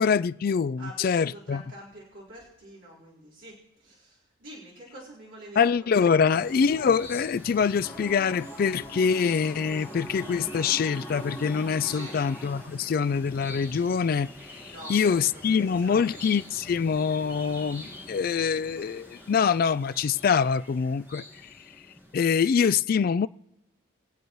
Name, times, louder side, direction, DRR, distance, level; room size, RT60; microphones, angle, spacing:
voice 1, 0.0-1.6 5.6-14.3 14.6-21.2 22.1-23.3, left 6 dB, 45° left, 0.3 m, -24 dB
voice 2, 0.8-6.2 11.8-12.2 14.6-16.1, right 1 dB, 70° right, 4.1 m, -46 dB
sound 1, 6.3-22.7, left 1 dB, 10° right, 1.9 m, -46 dB
sound 2, 7.8-12.7, equal, 5° left, 2.0 m, -42 dB
24.0 x 8.0 x 3.1 m
head